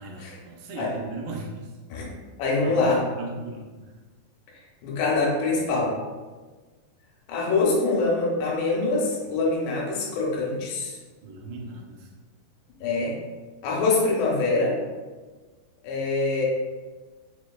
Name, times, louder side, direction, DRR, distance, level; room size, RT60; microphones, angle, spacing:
voice 1, 0.0-1.7 2.6-3.9 11.2-12.1, right 2 dB, 85° right, -1 dB, 2.7 m, -37 dB
voice 2, 2.4-3.1 4.8-6.0 7.3-11.0 12.8-13.1 13.6-14.8 15.8-16.5, left 3 dB, 80° left, -3 dB, 2.9 m, -24 dB
6.5 x 3.1 x 2.2 m, 1.3 s
omnidirectional pair, 5.0 m